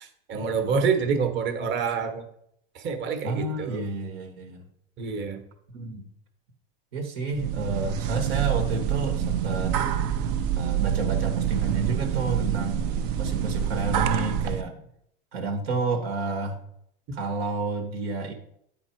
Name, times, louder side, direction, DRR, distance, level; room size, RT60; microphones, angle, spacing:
voice 1, 0.0-2.2 2.7-3.8 5.0-5.4, right 5 dB, 40° right, 6 dB, 1.2 m, -27 dB
voice 2, 3.2-4.6 5.7-6.0 6.9-9.8 10.6-12.9 13.2-14.8 15.3-16.6 17.1-18.3, right 3 dB, 85° right, 4 dB, 1.5 m, -30 dB
sound 1, 7.3-14.6, right 9 dB, 65° right, 0.8 m, -26 dB
9.1 x 4.0 x 4.5 m, 0.72 s
supercardioid pair, 130°, 30 cm